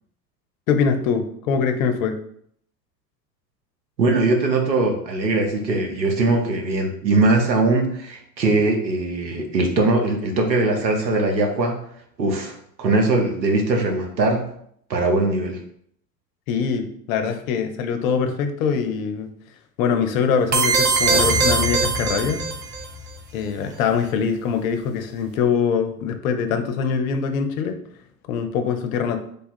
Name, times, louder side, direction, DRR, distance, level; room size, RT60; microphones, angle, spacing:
voice 1, 0.7-2.2 16.5-19.3 19.8-22.4 23.3-27.8 28.3-29.2, left 6 dB, 55° left, 7 dB, 0.7 m, -23 dB
voice 2, 4.0-11.8 12.2-14.5 14.9-15.6, right 2 dB, 90° right, 3 dB, 0.8 m, -21 dB
sound 1, 20.5-22.8, right 5 dB, 25° right, 0.5 m, -21 dB
sound 2, 20.8-23.6 23.9-24.0, left 3 dB, 15° left, 0.8 m, -30 dB
3.3 x 2.3 x 4.3 m, 0.67 s
figure-of-eight pair, 80°, 50 cm